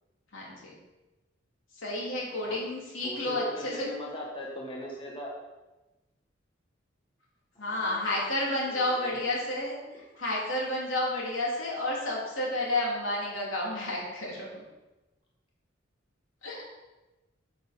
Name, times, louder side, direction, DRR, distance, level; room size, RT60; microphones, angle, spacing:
voice 1, 0.3-0.8 1.8-3.9 7.6-14.6 16.4-16.6, left 1 dB, 90° left, -4 dB, 3.4 m, -31 dB
voice 2, 3.0-5.3 7.6-8.1 8.6-9.2, equal, 25° left, -3 dB, 1.7 m, -39 dB
10.0 x 6.8 x 4.4 m, 1.1 s
head